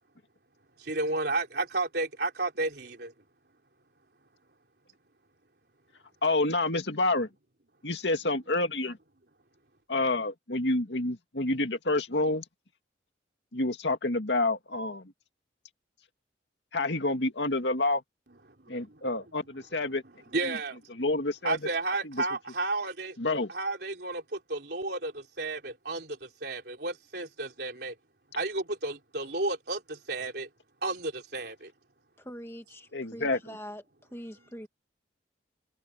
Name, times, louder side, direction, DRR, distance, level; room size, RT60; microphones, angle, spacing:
voice 1, 0.8-3.1 18.3-19.3 19.7-20.8 21.4-27.9 28.4-30.5 30.8-31.7, right 2 dB, 60° right, 4.0 m, -33 dB
voice 2, 6.2-7.3 7.8-9.0 9.9-12.4 13.5-15.1 16.7-18.0 18.7-20.0 20.4-20.6 21.0-21.6 22.0-22.2 23.2-23.5 32.9-33.6, left 2 dB, 70° left, 2.3 m, -28 dB
voice 3, 32.2-33.8 34.1-34.7, equal, 15° left, 1.5 m, -43 dB
head